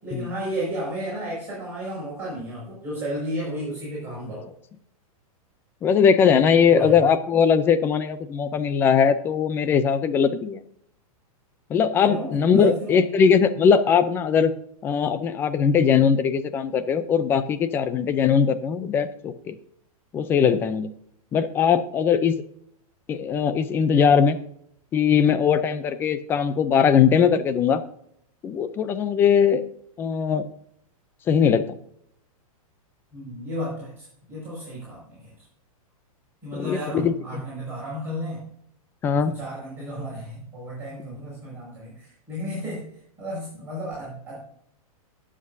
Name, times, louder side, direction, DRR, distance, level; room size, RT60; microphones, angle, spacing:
voice 1, 0.0-4.5 6.7-6.9 12.1-13.0 33.1-35.3 36.4-38.4 39.1-42.9 43.2-44.4, equal, 10° right, -9 dB, 5.2 m, -33 dB
voice 2, 5.8-10.6 11.7-14.5 14.8-19.6 20.1-20.9 21.3-22.4 23.1-24.4 24.9-27.8 28.4-29.6 30.0-30.5 31.3-31.8 36.5-37.4 39.0-39.3, left 7 dB, 10° left, 13 dB, 0.4 m, -20 dB
19.5 x 7.4 x 2.6 m, 0.69 s
supercardioid pair, 165°, 19 cm